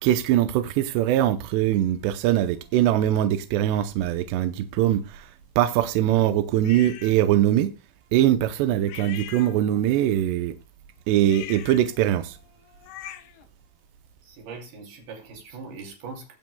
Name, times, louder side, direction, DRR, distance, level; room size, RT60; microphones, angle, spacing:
voice 1, 0.0-5.3 5.6-7.7 8.1-10.5 11.1-12.4, right 12 dB, 80° right, 2.5 m, -22 dB
sound 1, 6.6-7.2 8.9-10.0 11.2-13.5, left 12 dB, 75° left, 2.6 m, -42 dB
voice 2, 14.2-16.4, right 4 dB, 55° right, 4.5 m, -41 dB
21.0 x 7.7 x 2.2 m
omnidirectional pair, 5.6 m